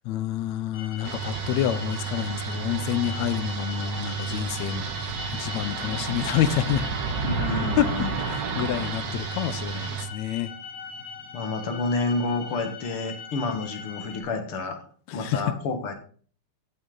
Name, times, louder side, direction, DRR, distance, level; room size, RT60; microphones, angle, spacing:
voice 1, 0.0-6.9 7.8-7.9 8.2-10.5 15.1-15.4, left 12 dB, 75° left, 13 dB, 1.9 m, -28 dB
sound 1, 0.7-14.2, left 5 dB, 30° left, 3.9 m, -41 dB
sound 2, 1.0-10.1, right 6 dB, 55° right, 1.3 m, -31 dB
voice 2, 7.2-8.1 11.3-14.8 15.1-15.9, left 3 dB, 55° left, 6 dB, 2.1 m, -29 dB
16.0 x 6.3 x 3.9 m, 0.43 s
omnidirectional pair, 3.4 m